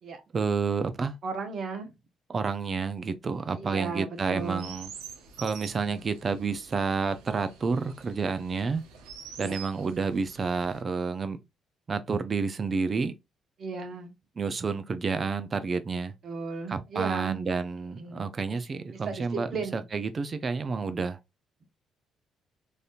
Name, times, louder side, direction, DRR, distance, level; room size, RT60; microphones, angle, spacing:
voice 1, 0.3-1.1 2.3-4.9 5.4-8.8 9.4-11.4 11.9-13.1 14.4-16.1 16.7-21.2, right 5 dB, 40° right, 0.6 m, -30 dB
voice 2, 1.2-1.9 3.5-4.7 5.8-6.1 9.4-9.6 13.6-14.1 16.2-17.4 17.7-18.2 19.0-19.8, right 4 dB, 55° right, 1.0 m, -35 dB
Chirp tweet, 4.2-10.8, right 6 dB, 85° right, 0.7 m, -47 dB
3.3 x 2.7 x 2.5 m
supercardioid pair, 70°, 0 cm